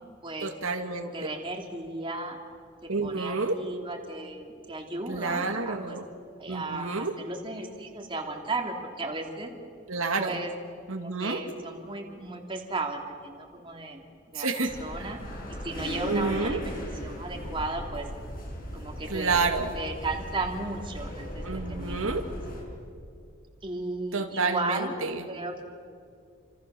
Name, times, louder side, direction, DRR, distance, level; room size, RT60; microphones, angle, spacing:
voice 1, 0.4-1.1 2.9-3.6 5.1-6.1 6.5-7.1 9.9-10.4 10.9-11.4 14.4-14.7 15.0-15.1 16.1-16.6 19.1-19.8 21.4-22.2 24.1-25.3, right 4 dB, 85° right, 4 dB, 2.2 m, -29 dB
voice 2, 1.1-2.4 3.0-6.0 6.4-9.5 10.2-10.5 11.2-14.0 14.3-15.2 15.6-16.8 17.0-18.1 18.7-19.4 19.7-22.2 23.6-25.0 25.3-25.6, right 2 dB, 25° right, 2 dB, 3.0 m, -35 dB
sound 1, 14.7-22.6, equal, 45° left, 6.3 m, -37 dB
29.0 x 27.0 x 7.0 m, 2.3 s
head